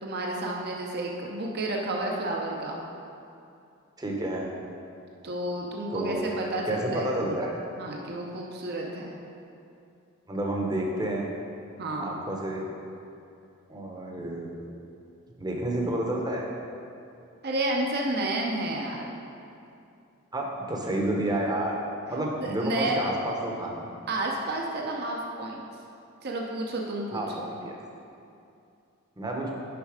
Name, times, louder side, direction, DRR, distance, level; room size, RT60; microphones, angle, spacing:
voice 1, 0.0-2.8 5.2-7.1 7.8-9.2 11.8-12.1 17.4-19.1 22.4-23.0 24.1-25.6 26.2-27.5, right 1 dB, 45° right, 0 dB, 0.7 m, -31 dB
voice 2, 4.0-4.5 5.9-6.4 6.7-7.5 10.3-11.3 12.0-12.6 13.7-14.5 15.4-16.5 20.3-21.8 22.1-23.8 27.1-27.7 29.2-29.5, right 1 dB, 20° right, -1 dB, 0.8 m, -30 dB
6.8 x 5.4 x 4.9 m, 2.6 s
head